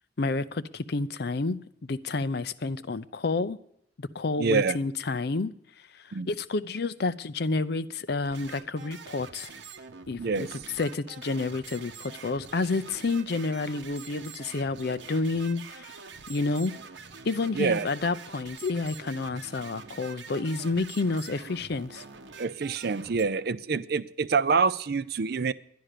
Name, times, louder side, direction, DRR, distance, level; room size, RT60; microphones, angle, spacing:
voice 1, 0.2-1.6 1.9-3.6 4.0-5.5 5.9-9.5 10.1-15.9 16.3-16.7 17.3-22.0, left 3 dB, 55° left, 0.5 m, -30 dB
voice 2, 4.4-4.8 6.1-6.3 10.2-10.5 17.5-17.9 22.4-25.5, right 5 dB, 55° right, 0.5 m, -26 dB
sound 1, 8.2-23.2, right 5 dB, 75° right, 1.0 m, -45 dB
11.5 x 10.5 x 6.6 m
head